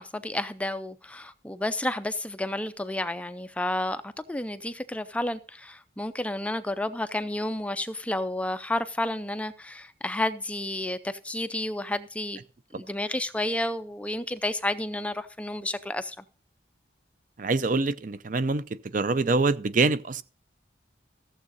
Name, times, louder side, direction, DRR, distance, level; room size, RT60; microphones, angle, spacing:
voice 1, 0.0-12.4 12.7-16.2, left 1 dB, 5° left, 0.4 m, -31 dB
voice 2, 17.4-18.6 18.9-20.2, right 3 dB, 45° right, 0.5 m, -25 dB
15.0 x 7.3 x 4.0 m
head